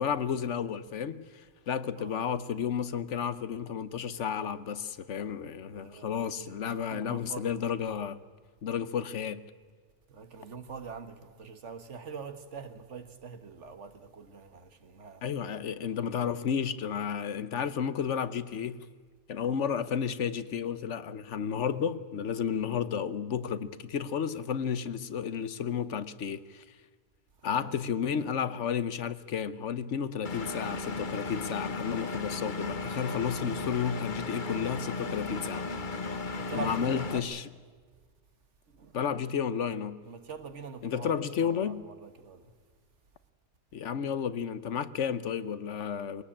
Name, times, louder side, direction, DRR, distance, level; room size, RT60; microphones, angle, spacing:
voice 1, 0.0-8.2 8.6-9.4 15.2-18.8 19.3-26.6 27.4-35.6 36.5-37.4 38.9-40.0 40.8-41.8 43.7-46.2, left 7 dB, 80° left, 1.2 m, -32 dB
voice 2, 5.7-7.6 10.1-15.2 27.4-27.8 33.1-33.2 36.3-37.3 38.7-39.0 40.0-42.5, right 5 dB, 80° right, 1.8 m, -44 dB
Engine, 30.2-37.2, left 3 dB, 45° left, 1.2 m, -35 dB
22.5 x 18.0 x 8.7 m
omnidirectional pair, 1.2 m